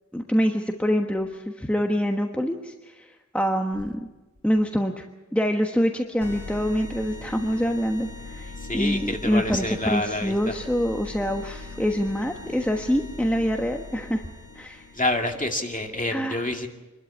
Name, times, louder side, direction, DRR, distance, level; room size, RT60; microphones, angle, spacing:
voice 1, 0.1-4.0 4.4-5.1 5.3-14.2 14.5-14.9 16.1-16.5, equal, 5° left, 3 dB, 1.3 m, -25 dB
sound 1, 6.2-15.6, left 3 dB, 85° left, 1.3 m, -40 dB
voice 2, 8.6-10.5 14.9-16.7, left 1 dB, 25° left, 3 dB, 2.3 m, -27 dB
26.0 x 12.5 x 8.6 m, 1.2 s
wide cardioid pair, 45°, 30 cm